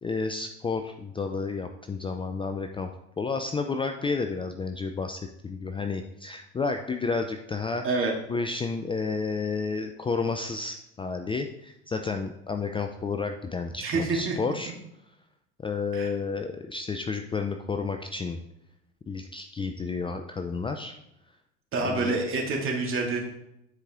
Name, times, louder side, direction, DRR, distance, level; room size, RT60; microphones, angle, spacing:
voice 1, 0.0-2.9 3.2-14.7 15.6-18.4 19.1-20.9 21.8-22.2, left 4 dB, 15° left, 6 dB, 0.5 m, -31 dB
voice 2, 13.8-14.4 15.9-16.1 21.7-23.2, right 3 dB, 40° right, -1 dB, 2.4 m, -27 dB
9.6 x 4.8 x 3.7 m, 0.83 s
hypercardioid pair, 70°, 34 cm